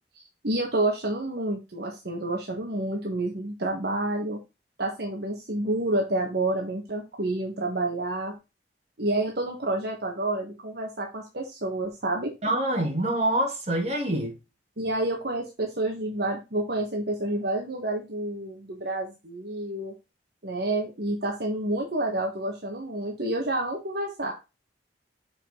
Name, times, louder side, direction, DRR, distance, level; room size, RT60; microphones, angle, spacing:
voice 1, 0.4-4.4 4.8-8.3 9.0-12.3 14.8-19.9 20.4-24.3, right 2 dB, 65° right, 1.4 m, -29 dB
voice 2, 12.4-14.4, right 1 dB, 40° right, 2.8 m, -26 dB
6.7 x 5.7 x 3.8 m
head